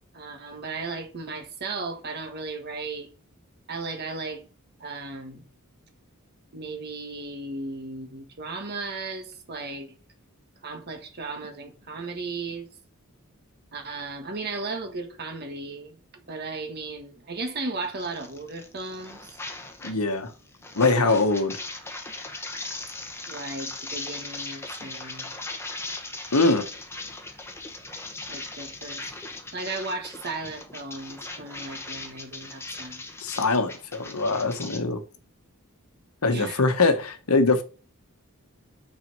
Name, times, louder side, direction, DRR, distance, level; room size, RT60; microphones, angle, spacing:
voice 1, 0.1-3.1 3.7-4.4 4.8-5.5 6.5-10.0 10.6-12.7 13.7-19.4 21.0-21.2 23.3-25.3 28.3-29.1 29.5-33.0 36.3-36.6, right 3 dB, 50° right, 1.4 m, -35 dB
sound 1, 18.0-20.0 20.3-34.8, left 2 dB, 10° left, 1.0 m, -38 dB
voice 2, 19.8-20.3 20.7-21.6 26.3-26.7 33.2-35.0 36.2-37.6, left 3 dB, 80° left, 1.0 m, -22 dB
6.0 x 4.1 x 5.3 m
head